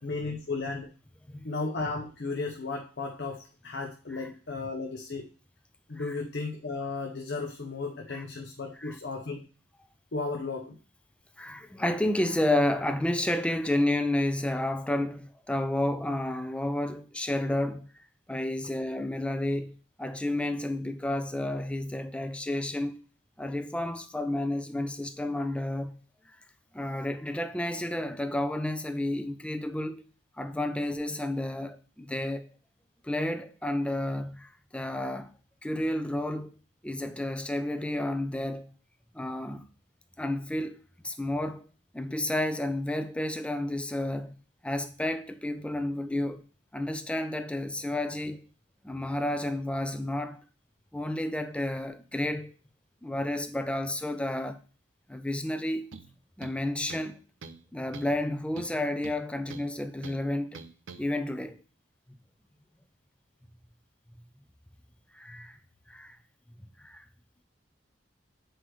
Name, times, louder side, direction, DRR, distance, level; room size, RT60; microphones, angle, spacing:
voice 1, 0.0-0.9 1.4-5.3 5.9-9.5 10.1-10.8, left 3 dB, 60° left, 0.7 m, -34 dB
voice 2, 11.4-23.0 23.4-26.0 26.3-26.4 26.7-30.0 30.4-32.5 33.0-35.3 35.6-36.5 36.8-38.7 39.1-39.6 40.2-40.8 41.0-41.6 41.9-44.4 44.6-46.4 46.7-48.5 48.8-50.4 50.9-52.5 53.0-54.6 55.1-55.9 56.4-57.2 57.7-60.6 61.0-61.6 65.1-65.6 65.9-66.2 66.8-67.0, left 1 dB, 5° left, 0.4 m, -31 dB
sound 1, 55.9-56.1 56.4-57.1 57.4-57.6 57.9-58.2 58.6-59.7 60.0-60.2 60.5-61.0, right 4 dB, 90° right, 0.7 m, -45 dB
7.7 x 4.7 x 3.1 m
head